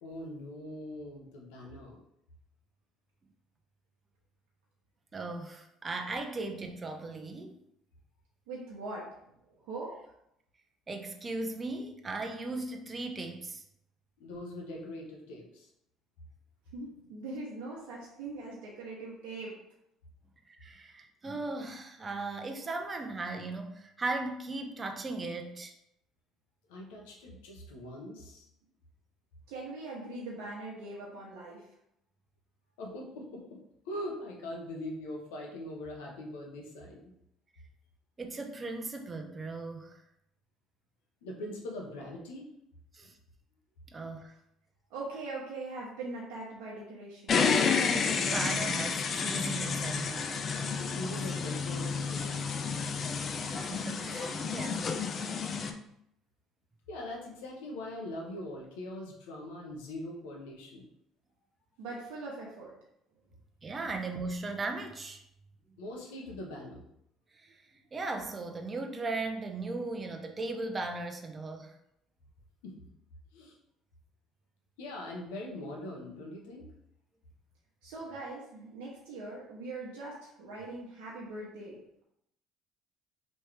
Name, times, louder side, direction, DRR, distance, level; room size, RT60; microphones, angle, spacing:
voice 1, 0.0-2.0 14.2-15.7 26.7-28.4 32.8-33.6 33.8-37.1 41.2-42.5 50.9-52.8 56.9-60.9 65.8-66.8 72.6-72.7 73.3-73.5 74.8-76.6, left 1 dB, 85° left, -1 dB, 1.0 m, -42 dB
voice 2, 5.1-7.6 10.9-13.6 20.5-25.7 38.2-40.0 42.9-43.2 43.9-44.3 48.1-50.5 53.5-54.9 63.6-65.2 67.3-71.8, right 3 dB, 30° right, 4 dB, 0.6 m, -37 dB
voice 3, 8.5-10.0 16.7-19.5 29.5-31.7 44.9-47.7 54.1-54.8 61.8-62.7 77.8-82.0, right 2 dB, 80° right, -4 dB, 0.9 m, -42 dB
sound 1, 47.3-55.7, left 5 dB, 45° left, 0.5 m, -30 dB
4.3 x 3.1 x 3.3 m, 0.77 s
supercardioid pair, 80°, 0 cm